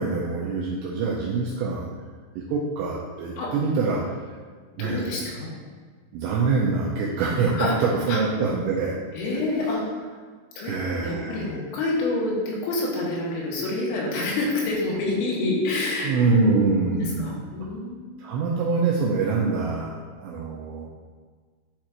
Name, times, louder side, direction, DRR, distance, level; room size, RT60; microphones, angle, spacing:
voice 1, 0.0-1.9 2.4-4.0 4.8-5.0 6.1-9.0 10.6-11.5 16.0-17.3 18.2-20.9, right 4 dB, 90° right, -4 dB, 2.5 m, -25 dB
voice 2, 4.8-5.5 7.5-7.8 8.1-8.2 9.1-10.1 10.6-16.6 16.9-18.2, left 2 dB, 85° left, -4 dB, 3.9 m, -27 dB
11.0 x 4.4 x 2.5 m, 1.5 s
omnidirectional pair, 5.7 m